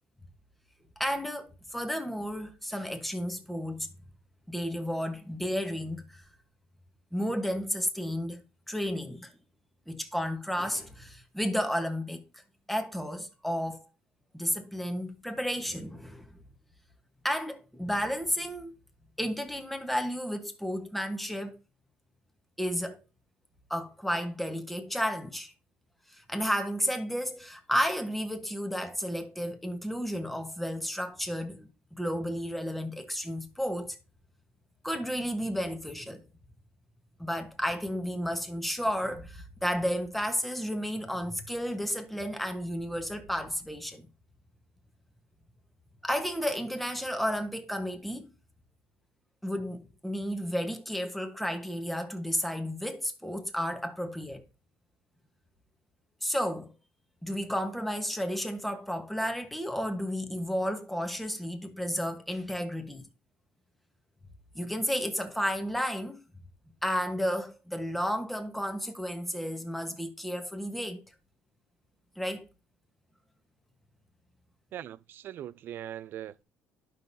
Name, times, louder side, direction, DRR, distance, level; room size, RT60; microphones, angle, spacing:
voice 1, 1.0-3.9 4.5-6.2 7.1-9.3 9.9-12.4 12.7-13.9 14.3-16.4 17.2-18.7 19.2-21.6 22.6-23.0 23.7-25.5 26.1-34.0 34.8-36.3 37.2-44.1 46.0-48.2 49.4-54.4 56.2-56.7 57.2-63.1 64.5-66.2 66.8-71.0 72.2-72.5, equal, 5° left, 1.2 m, -32 dB
voice 2, 74.7-76.4, right 11 dB, 50° right, 0.4 m, -41 dB
11.5 x 5.7 x 2.7 m
cardioid pair, 125°, 4 cm